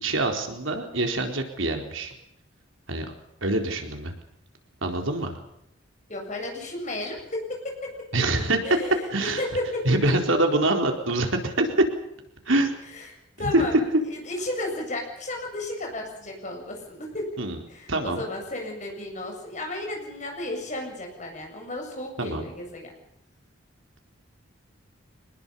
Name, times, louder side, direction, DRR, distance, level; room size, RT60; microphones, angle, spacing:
voice 1, 0.0-2.1 2.9-3.1 3.4-4.1 4.8-5.4 8.1-8.6 9.1-9.4 9.8-11.7 12.5-12.7 13.4-13.8 17.4-17.6 17.9-18.3 22.2-22.4, right 2 dB, 80° right, 3 dB, 4.2 m, -25 dB
voice 2, 6.1-7.9 8.6-9.8 13.4-13.7 14.1-17.2 17.7-22.9, left 1 dB, 35° left, 2 dB, 7.6 m, -33 dB
25.0 x 20.5 x 7.1 m, 0.78 s
head